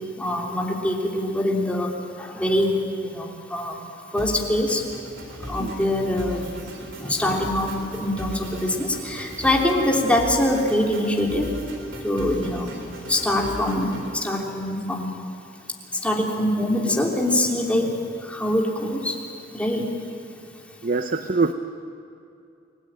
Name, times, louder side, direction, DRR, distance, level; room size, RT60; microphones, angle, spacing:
voice 1, 0.2-1.9 2.2-3.7 4.1-4.8 5.5-6.4 7.0-11.5 12.0-12.7 13.1-15.1 16.0-17.9 18.3-19.1 19.5-19.8, left 1 dB, 5° left, -1 dB, 3.4 m, -23 dB
sound 1, 4.2-14.2, right 1 dB, 70° right, 4.3 m, -37 dB
voice 2, 20.8-21.5, right 3 dB, 45° right, 8 dB, 0.8 m, -23 dB
29.5 x 19.5 x 9.0 m, 2.5 s
head